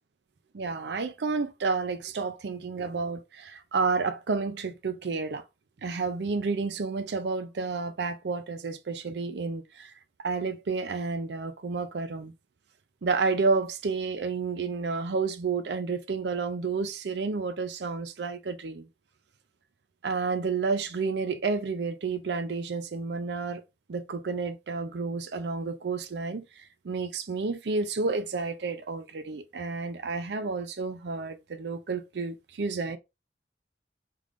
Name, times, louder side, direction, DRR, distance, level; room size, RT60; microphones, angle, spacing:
voice 1, 0.5-5.4 5.8-9.9 10.2-12.3 13.0-18.9 20.0-23.6 23.9-26.5 26.8-33.0, right 4 dB, 70° right, 0.5 m, -30 dB
3.4 x 3.4 x 2.5 m
head